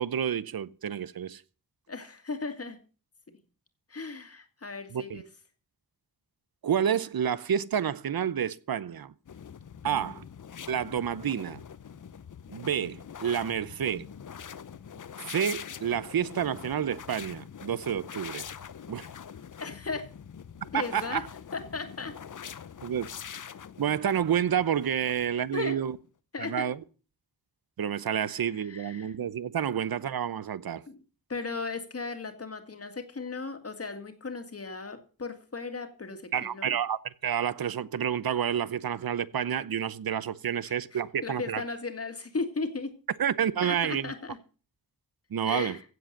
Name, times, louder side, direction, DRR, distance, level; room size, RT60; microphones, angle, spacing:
voice 1, 0.0-1.4 4.9-5.2 6.6-9.1 9.8-10.2 10.7-11.6 12.5-14.1 15.2-18.4 18.9-19.1 20.7-21.3 22.8-23.1 23.8-26.0 26.4-26.8 27.8-30.8 36.3-41.6 43.2-44.1 45.3-45.8, right 8 dB, 75° right, 0.8 m, -29 dB
voice 2, 1.9-2.8 3.9-5.2 9.8-10.2 19.6-20.1 20.7-21.2 21.5-22.2 25.5-25.8 26.3-26.7 28.2-29.1 30.9-31.0 31.3-36.7 40.6-42.9 43.6-44.4 45.4-45.8, left 4 dB, 40° left, 2.1 m, -36 dB
sound 1, 9.2-25.9, left 7 dB, 55° left, 0.8 m, -44 dB
16.0 x 7.8 x 6.6 m
wide cardioid pair, 135°, 36 cm